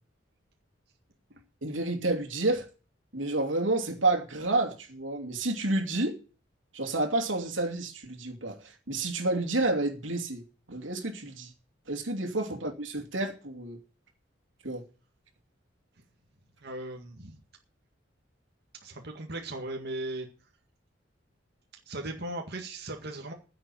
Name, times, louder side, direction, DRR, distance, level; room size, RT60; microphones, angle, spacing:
voice 1, 1.6-2.7 3.1-6.2 6.7-11.5 11.9-13.8 14.6-14.8, right 2 dB, 90° right, 2.7 m, -30 dB
voice 2, 16.6-17.4 18.8-20.3 21.9-23.3, right 2 dB, 60° right, 1.9 m, -37 dB
10.0 x 7.7 x 9.2 m
head